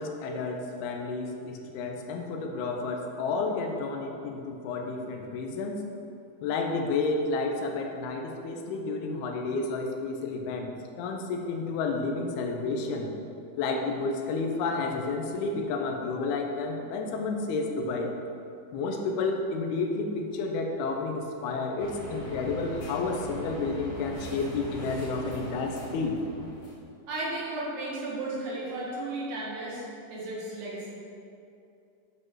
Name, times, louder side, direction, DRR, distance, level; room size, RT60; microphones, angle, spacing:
voice 1, 0.0-5.8 6.4-10.7 11.0-13.1 13.6-18.1 18.7-26.2, left 3 dB, 75° left, 2 dB, 2.4 m, -31 dB
sound 1, 21.8-26.8, left 1 dB, 60° left, 2.6 m, -40 dB
voice 2, 27.1-30.9, right 2 dB, 55° right, -5 dB, 2.5 m, -34 dB
9.9 x 7.7 x 4.7 m, 2.6 s
omnidirectional pair, 5.5 m